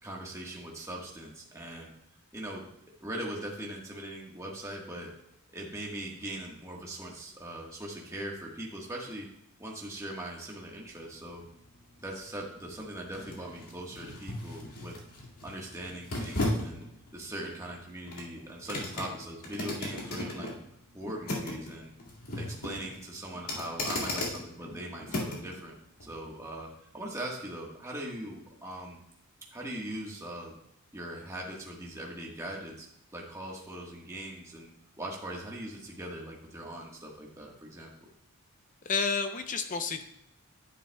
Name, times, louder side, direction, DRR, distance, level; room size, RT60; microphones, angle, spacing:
voice 1, 0.0-1.9 2.3-2.6 3.0-5.1 5.5-9.3 9.6-11.4 12.0-14.9 15.4-16.8 17.1-20.5 20.9-21.9 22.3-26.7 26.9-29.0 29.5-30.5 30.9-37.9, right 1 dB, 15° right, -3 dB, 1.4 m, -40 dB
sound 1, 10.9-25.6 26.0-26.1, left 1 dB, 85° left, 2.2 m, -37 dB
voice 2, 38.8-40.0, left 5 dB, 35° left, 8 dB, 0.6 m, -30 dB
10.0 x 9.1 x 2.3 m, 0.78 s
head